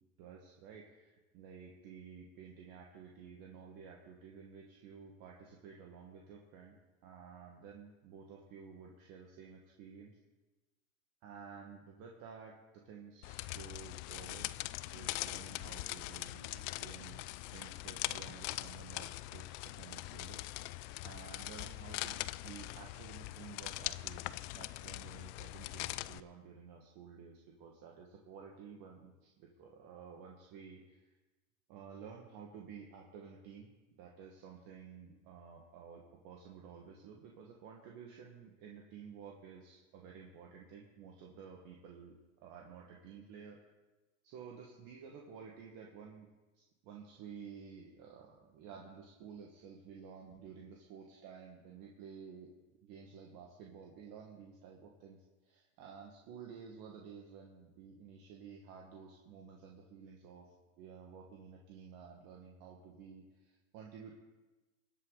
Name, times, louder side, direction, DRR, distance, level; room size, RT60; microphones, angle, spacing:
voice 1, 0.2-6.8 7.0-10.2 11.2-12.5 12.8-14.5 14.9-17.2 17.5-20.4 21.0-31.1 31.7-33.7 34.0-43.6 44.2-46.3 46.5-52.5 52.8-64.1, right 6 dB, 55° right, -1 dB, 2.0 m, -52 dB
sound 1, 13.2-26.2, left 18 dB, 55° left, 0.5 m, -42 dB
21.0 x 8.3 x 4.1 m, 1.1 s
supercardioid pair, 125°, 42 cm